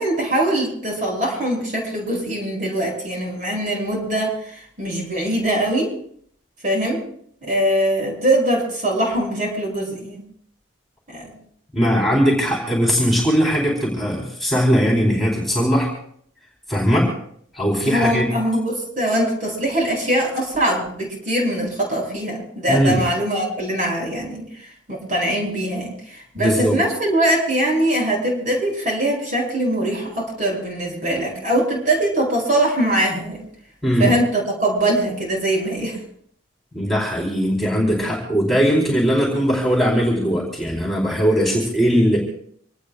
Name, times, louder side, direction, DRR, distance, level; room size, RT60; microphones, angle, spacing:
voice 1, 0.0-5.9 6.6-7.0 7.4-10.2 11.1-11.3 17.8-33.4 34.0-36.0, right 1 dB, 40° right, -1 dB, 7.9 m, -22 dB
voice 2, 11.7-15.9 16.7-17.1 17.5-18.3 22.7-23.0 26.4-26.8 33.8-34.1 36.7-42.2, equal, ahead, -4 dB, 4.2 m, -19 dB
26.5 x 19.0 x 2.5 m, 0.63 s
head